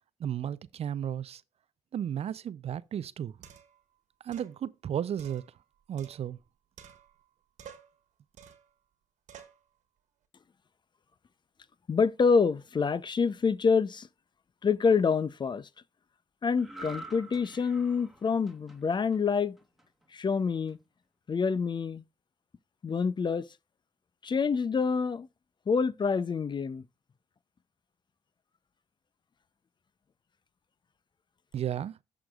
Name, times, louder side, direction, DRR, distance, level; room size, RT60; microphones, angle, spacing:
voice 1, 0.2-1.4 1.9-3.3 4.2-5.4 5.9-6.4 31.5-32.0, right 9 dB, 55° right, 0.4 m, -34 dB
sound 1, 3.4-3.8 4.3-4.5 5.2-6.5 6.8-7.3 7.6-8.0 8.4-8.7 9.3-9.6, right 8 dB, 70° right, 1.4 m, -52 dB
voice 2, 11.9-14.1 14.6-15.7 16.4-19.6 20.1-20.8 21.3-22.0 22.8-23.5 24.2-25.3 25.7-26.8, left 5 dB, 35° left, 0.5 m, -27 dB
sound 2, 16.6-20.0 20.5-20.7, right 2 dB, ahead, 1.4 m, -48 dB
15.0 x 5.0 x 2.3 m
supercardioid pair, 60°, 13 cm